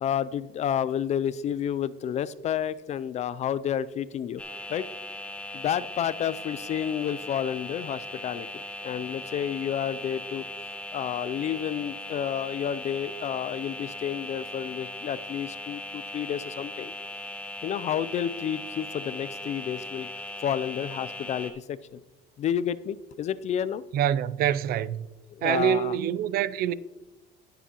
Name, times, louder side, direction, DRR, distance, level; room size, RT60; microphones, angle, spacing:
voice 1, 0.0-4.4 4.7-4.8 5.5-10.4 10.9-16.9 17.6-20.1 20.4-22.0 22.4-23.8 25.3-26.0, left 9 dB, 35° left, 0.3 m, -30 dB
sound 1, 4.4-21.5, left 2 dB, 5° left, 1.0 m, -39 dB
voice 2, 23.9-25.1 25.4-26.7, right 10 dB, 55° right, 0.4 m, -25 dB
18.5 x 6.9 x 2.9 m
cardioid pair, 155°, 19 cm